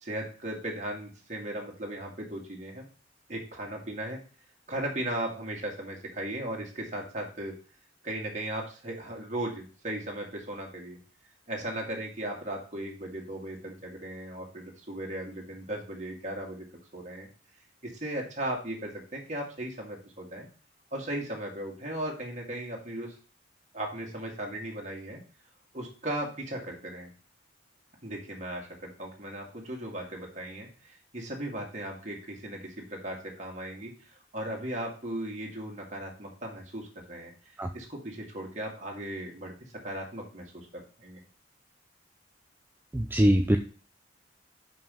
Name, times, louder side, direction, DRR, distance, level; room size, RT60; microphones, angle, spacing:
voice 1, 0.0-2.9 3.3-4.2 4.7-7.5 8.0-11.0 11.5-16.7 16.9-17.3 17.8-20.5 20.9-23.2 23.7-25.2 25.7-27.1 28.0-41.2, right 1 dB, 40° right, 0 dB, 1.9 m, -37 dB
voice 2, 42.9-43.6, equal, 10° right, 5 dB, 0.4 m, -22 dB
5.6 x 5.4 x 5.3 m, 0.38 s
head